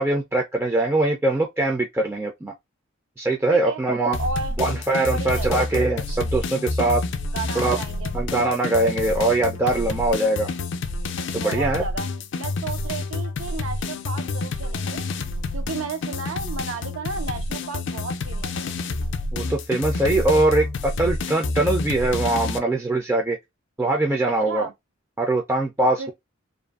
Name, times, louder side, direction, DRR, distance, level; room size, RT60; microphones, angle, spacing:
voice 1, 0.0-2.5 3.2-4.2 4.6-7.0 7.6-7.8 8.1-10.5 11.3-11.8 19.3-23.4 23.8-24.7 25.2-26.1, right 2 dB, 10° right, 0.3 m, -22 dB
voice 2, 3.5-3.8 4.2-4.6 5.1-5.6 7.3-8.1 11.4-12.1 12.4-15.1 15.5-18.8 24.5-24.7 25.8-26.1, right 4 dB, 80° right, 0.6 m, -33 dB
sound 1, 4.1-22.6, left 3 dB, 60° left, 0.4 m, -28 dB
2.6 x 2.5 x 2.3 m
head